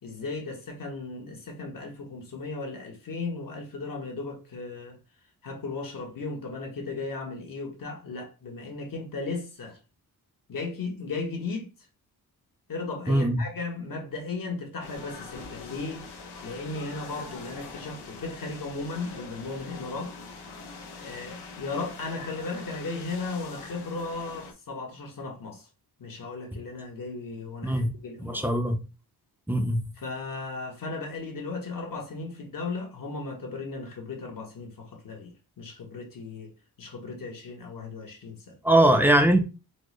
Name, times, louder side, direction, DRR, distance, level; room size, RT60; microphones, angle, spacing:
voice 1, 0.0-5.0 5.4-9.8 10.5-11.7 12.7-16.1 16.4-20.1 21.0-25.7 26.0-28.4 30.0-36.5 36.8-38.5, left 3 dB, 55° left, 1.2 m, -36 dB
voice 2, 13.1-13.4 27.6-27.9 28.2-28.8 29.5-29.8 38.6-39.4, right 1 dB, 5° right, 0.6 m, -21 dB
sound 1, 14.8-24.5, left 4 dB, 90° left, 0.8 m, -43 dB
4.3 x 2.1 x 3.1 m
cardioid pair, 90°, 39 cm